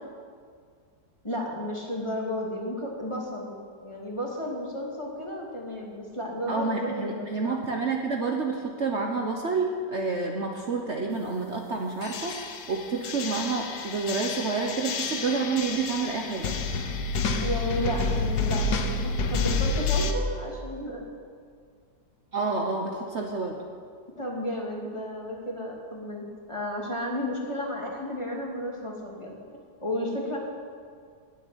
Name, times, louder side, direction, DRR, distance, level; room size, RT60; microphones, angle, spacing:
voice 1, 1.2-3.6 3.8-7.6 17.4-21.0 24.1-29.4 29.8-30.4, equal, 15° left, -2 dB, 2.5 m, -33 dB
voice 2, 6.5-16.6 22.3-23.6, right 4 dB, 45° right, 1 dB, 1.3 m, -29 dB
sound 1, 12.0-20.1, left 3 dB, 75° left, 1.6 m, -29 dB
16.5 x 7.4 x 10.0 m, 2.1 s
omnidirectional pair, 1.8 m